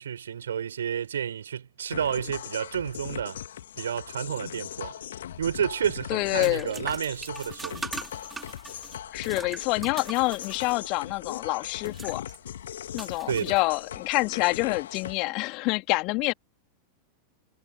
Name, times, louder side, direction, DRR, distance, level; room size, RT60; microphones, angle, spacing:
voice 1, 0.0-3.4 3.8-4.9 5.4-7.9 13.3-13.6, right 8 dB, 65° right, 7.0 m, -30 dB
sound 1, 1.9-15.1, left 10 dB, 60° left, 3.2 m, -39 dB
sound 2, 5.4-14.1, right 4 dB, 10° right, 4.3 m, -42 dB
voice 2, 6.1-6.7 9.1-12.2 12.9-16.3, left 25 dB, 40° left, 2.7 m, -27 dB
figure-of-eight pair, 90°, 0 cm